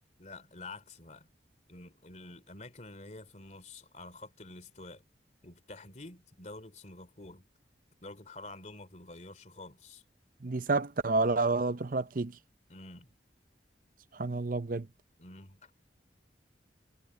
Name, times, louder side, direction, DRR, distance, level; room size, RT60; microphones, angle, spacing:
voice 1, 0.2-1.3 1.7-5.1 5.4-7.4 8.0-10.0 12.7-13.1 15.2-15.7, left 2 dB, 40° left, 3.1 m, -48 dB
voice 2, 10.4-12.4 14.1-14.9, right 3 dB, 50° right, 0.7 m, -29 dB
head